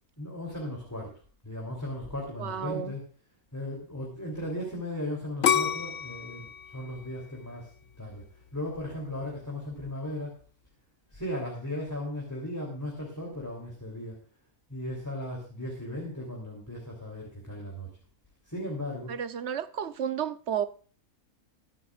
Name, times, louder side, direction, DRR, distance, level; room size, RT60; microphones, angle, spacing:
voice 1, 0.2-1.1 1.4-3.0 3.5-7.7 8.0-8.2 8.5-10.3 11.1-14.2 14.7-17.9 18.4-19.1, left 1 dB, 10° left, 3.2 m, -36 dB
voice 2, 2.4-2.9 19.1-20.7, right 8 dB, 55° right, 1.1 m, -32 dB
sound 1, 5.4-8.3 8.9-9.3, left 8 dB, 60° left, 1.1 m, -29 dB
23.5 x 8.9 x 2.5 m
omnidirectional pair, 1.5 m